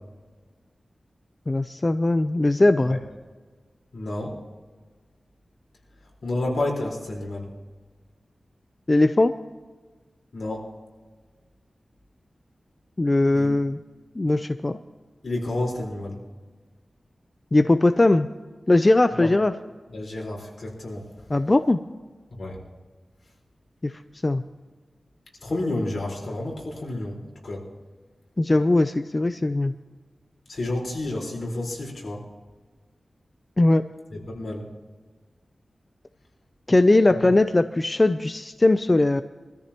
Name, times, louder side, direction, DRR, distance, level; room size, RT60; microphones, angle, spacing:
voice 1, 1.5-3.0 8.9-9.3 13.0-13.8 14.2-14.8 17.5-18.3 18.7-19.5 21.3-21.8 23.8-24.4 28.4-29.7 33.6-33.8 36.7-39.2, left 2 dB, 30° left, 10 dB, 0.4 m, -20 dB
voice 2, 3.9-4.3 6.2-7.5 10.3-10.6 13.3-13.6 15.2-16.2 19.1-19.3 19.9-21.0 22.4-22.6 25.4-27.6 30.5-32.2 34.1-34.6, left 2 dB, 65° left, -2 dB, 4.4 m, -30 dB
24.0 x 14.0 x 3.0 m, 1.4 s
wide cardioid pair, 105°, 0 cm